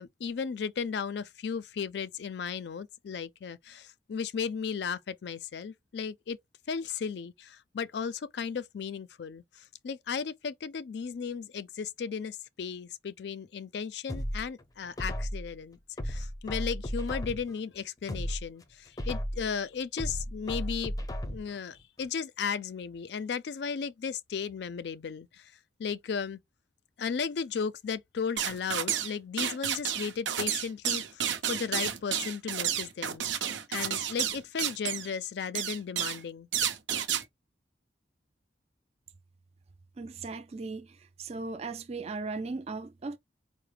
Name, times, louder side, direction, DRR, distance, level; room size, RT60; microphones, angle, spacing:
voice 1, 0.0-6.4 6.7-15.8 16.0-20.9 21.3-25.5 25.8-26.4 27.0-33.2 33.7-36.5, left 6 dB, 65° left, 0.4 m, -35 dB
sound 1, 14.1-15.5 16.0-17.6 18.0-19.5 20.0-21.6 22.0-22.1, equal, 20° left, 0.6 m, -35 dB
sound 2, 28.4-29.1 29.4-35.1 35.5-36.2 36.5-37.2, right 9 dB, 85° right, 0.6 m, -31 dB
voice 2, 40.0-43.2, right 3 dB, 35° right, 0.4 m, -37 dB
4.7 x 2.0 x 3.2 m
head